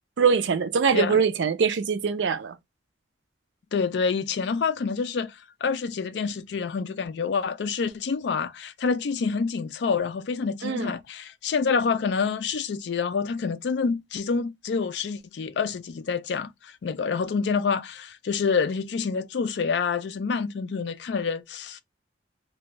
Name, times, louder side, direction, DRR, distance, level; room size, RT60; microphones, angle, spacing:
voice 1, 0.2-2.6 10.6-10.9, right 6 dB, 75° right, 0.4 m, -23 dB
voice 2, 3.7-21.8, left 5 dB, 65° left, 0.4 m, -27 dB
2.6 x 2.2 x 3.0 m
head